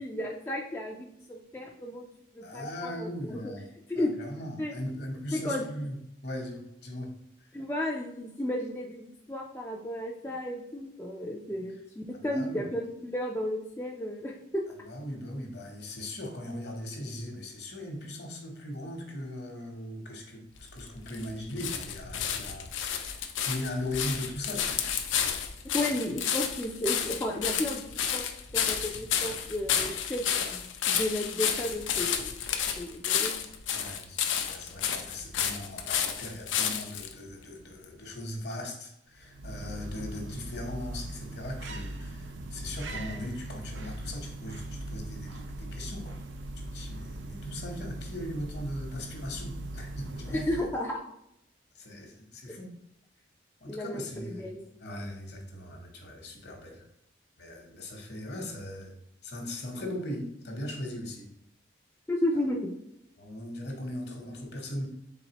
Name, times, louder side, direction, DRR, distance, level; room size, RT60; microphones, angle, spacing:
voice 1, 0.0-2.1 2.3-3.5 3.9-4.1 4.6-4.7 5.3-5.7 7.5-14.6 25.7-28.2 28.5-32.4 32.8-33.3 50.3-51.0 52.5-52.6 53.7-54.6 62.1-62.7, left 1 dB, 15° left, -2 dB, 0.3 m, -33 dB
voice 2, 2.4-3.7 3.9-6.0 6.2-7.2 12.1-12.6 14.8-24.8 25.7-25.9 33.7-46.2 46.7-50.5 51.7-52.7 53.6-56.9 57.4-58.9 59.2-61.3 63.2-64.9, left 1 dB, 55° left, 2 dB, 1.0 m, -39 dB
sound 1, 20.6-37.1 37.8-37.9, left 8 dB, 80° left, 0.5 m, -31 dB
sound 2, 39.1-50.9, right 1 dB, 75° right, 0.5 m, -40 dB
4.1 x 3.6 x 2.9 m, 0.78 s
head